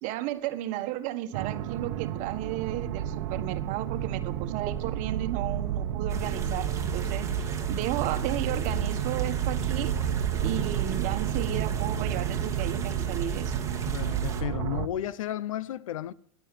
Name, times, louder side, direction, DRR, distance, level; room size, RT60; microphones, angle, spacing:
voice 1, 0.0-10.0 10.4-13.6, right 14 dB, 50° right, 1.6 m, -34 dB
sound 1, 1.3-14.9, right 10 dB, 70° right, 1.1 m, -31 dB
sound 2, 6.1-14.4, right 4 dB, 20° right, 2.6 m, -36 dB
voice 2, 13.9-16.1, left 11 dB, 90° left, 0.7 m, -33 dB
11.0 x 9.1 x 9.4 m
supercardioid pair, 120°, 17 cm